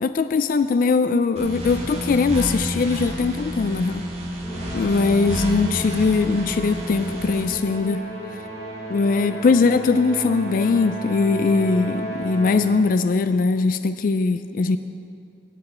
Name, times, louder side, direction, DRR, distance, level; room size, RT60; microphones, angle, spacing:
voice 1, 0.0-4.1 4.7-8.0 8.9-14.8, left 4 dB, 50° left, 10 dB, 0.3 m, -21 dB
sound 1, 1.4-7.4, equal, 40° right, 1.9 m, -30 dB
Musical instrument, 4.4-12.9, right 1 dB, 5° left, 3.3 m, -34 dB
16.0 x 8.9 x 4.3 m, 2.3 s
head